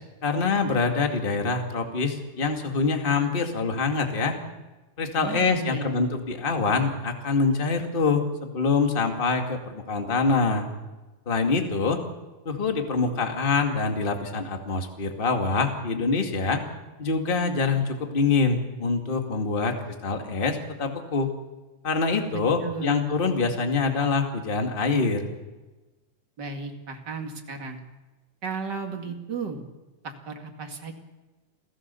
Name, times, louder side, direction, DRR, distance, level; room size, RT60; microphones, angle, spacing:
voice 1, 0.2-4.4 5.0-10.6 11.3-12.0 12.5-16.6 17.0-21.3 21.8-25.3, left 4 dB, 20° left, 4 dB, 1.9 m, -25 dB
voice 2, 5.2-6.0 22.3-23.1 26.4-27.8 28.4-29.6 30.0-30.9, right 4 dB, 35° right, 3 dB, 2.6 m, -34 dB
28.0 x 16.5 x 7.0 m, 1.2 s
omnidirectional pair, 3.5 m